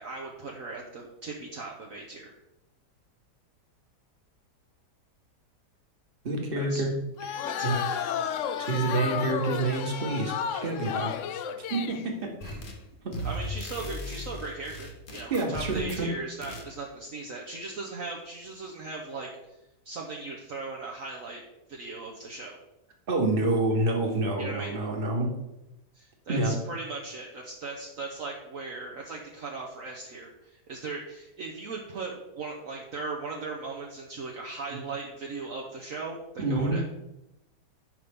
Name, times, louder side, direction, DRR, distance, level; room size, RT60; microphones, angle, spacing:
voice 1, 0.0-2.4 6.5-6.8 7.4-8.0 12.4-12.8 13.2-19.3 19.8-21.4 21.7-22.6 24.4-24.7 25.9-36.8, right 3 dB, 55° right, -1 dB, 1.3 m, -38 dB
voice 2, 6.2-6.9 7.3-7.8 8.6-10.3 10.6-11.1 11.7-12.6 13.0-13.1 15.3-16.1 23.1-25.3 26.3-26.5 36.4-36.8, right 2 dB, 35° right, 1 dB, 1.6 m, -28 dB
sound 1, 7.2-12.0, left 8 dB, 70° left, 0.7 m, -32 dB
sound 2, 12.4-12.8 13.1-16.1 16.4-16.7, left 1 dB, 35° left, 1.0 m, -37 dB
11.0 x 5.7 x 3.6 m, 0.92 s
omnidirectional pair, 1.8 m